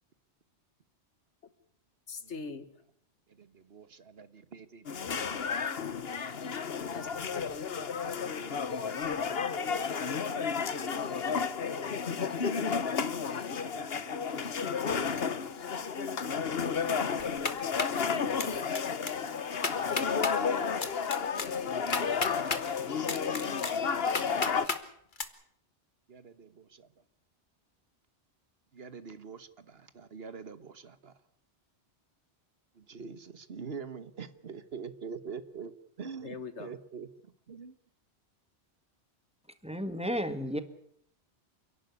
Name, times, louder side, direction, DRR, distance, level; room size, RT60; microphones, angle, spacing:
voice 1, 2.1-2.7 5.9-6.2 6.9-7.6 36.2-36.7, left 5 dB, 80° left, 13 dB, 1.8 m, -42 dB
voice 2, 3.3-7.0 8.0-9.2 10.9-11.8 13.2-14.8 19.9-24.7 26.1-26.9 28.7-31.1 32.8-35.7 36.0-37.1 37.5-37.7, right 5 dB, 60° right, 13 dB, 1.5 m, -48 dB
sound 1, 4.9-24.7, left 6 dB, 60° left, 1.3 m, -32 dB
sound 2, 17.2-18.0 18.4-18.8 19.1-19.2 19.5-20.3 20.8-22.6 23.0-24.8 25.2-25.3, left 4 dB, 45° left, 1.7 m, -33 dB
voice 3, 39.6-40.6, equal, 5° right, 10 dB, 1.7 m, -32 dB
29.0 x 11.5 x 9.6 m, 0.68 s
omnidirectional pair, 1.2 m